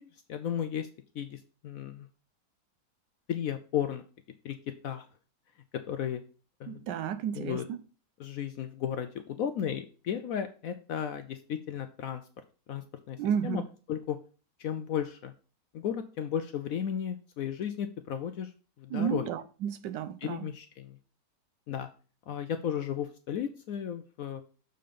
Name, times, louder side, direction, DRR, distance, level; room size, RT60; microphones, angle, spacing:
voice 1, 0.3-0.9 1.1-2.1 3.3-4.0 4.4-4.6 4.8-5.1 5.9-6.2 6.6-6.9 7.3-7.6 8.2-12.2 12.7-13.6 13.9-14.2 14.6-15.3 15.7-18.5 18.8-19.3 20.2-21.0 21.7-21.9 22.3-24.4, left 9 dB, 70° left, 0.8 m, -34 dB
voice 2, 6.7-7.8 13.2-13.7 18.9-20.5, right 9 dB, 80° right, 1.3 m, -32 dB
6.8 x 3.8 x 5.1 m
omnidirectional pair, 1.9 m